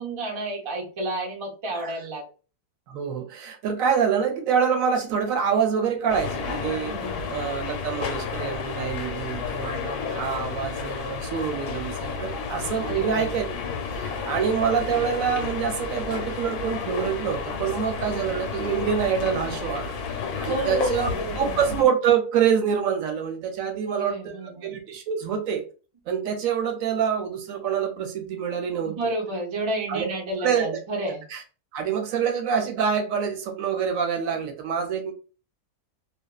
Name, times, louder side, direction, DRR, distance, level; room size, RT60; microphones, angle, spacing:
voice 1, 0.0-2.2 6.9-7.3 12.8-13.2 20.4-21.6 23.9-24.7 28.8-31.2, right 2 dB, 50° right, 0 dB, 0.3 m, -31 dB
voice 2, 2.9-6.9 7.3-13.4 13.9-19.9 20.4-21.1 21.4-24.3 24.6-25.6 26.1-28.9 29.9-30.1 30.4-30.8 31.3-31.4 31.7-35.1, right 7 dB, 70° right, 4 dB, 0.9 m, -26 dB
sound 1, 6.1-21.8, left 5 dB, 85° left, 1.2 m, -31 dB
2.5 x 2.3 x 2.2 m, 0.36 s
omnidirectional pair, 1.6 m